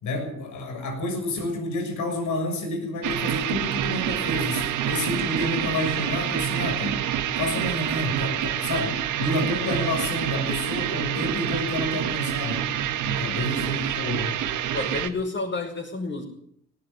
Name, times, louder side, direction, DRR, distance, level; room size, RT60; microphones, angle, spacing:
voice 1, 0.0-7.0 7.4-12.7 13.0-14.4, left 1 dB, 80° left, 4 dB, 6.8 m, -29 dB
Rotating tank turret planetary electric motor, 3.0-15.1, right 10 dB, 80° right, 1.7 m, -27 dB
voice 2, 14.7-16.2, left 3 dB, 40° left, -2 dB, 6.0 m, -30 dB
18.5 x 15.0 x 9.2 m, 0.69 s
cardioid pair, 90°, 30 cm